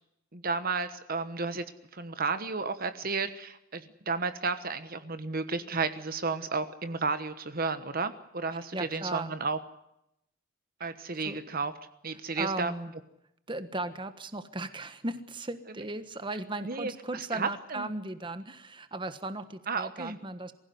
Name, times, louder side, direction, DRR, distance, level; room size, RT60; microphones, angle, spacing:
voice 1, 0.3-1.6 1.9-9.6 10.8-11.7 12.0-12.7 16.6-17.9 19.7-20.2, right 4 dB, 45° right, 10 dB, 1.2 m, -32 dB
voice 2, 8.7-9.3 11.2-11.4 12.4-12.9 13.5-20.5, right 2 dB, 25° right, 10 dB, 1.3 m, -36 dB
24.0 x 16.0 x 9.4 m, 0.82 s
head